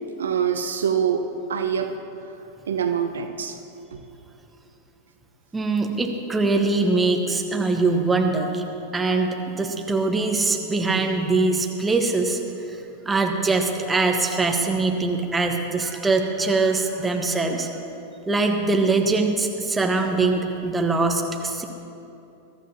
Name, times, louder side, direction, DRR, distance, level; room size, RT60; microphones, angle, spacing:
voice 1, 0.2-1.9 2.7-3.6 3.9-4.0, right 7 dB, 65° right, 7 dB, 0.7 m, -25 dB
voice 2, 5.5-8.6 8.9-12.4 12.7-17.7 18.3-21.6, right 3 dB, 10° right, 3 dB, 1.3 m, -22 dB
22.0 x 13.0 x 2.9 m, 2.8 s
figure-of-eight pair, 90°, 0 cm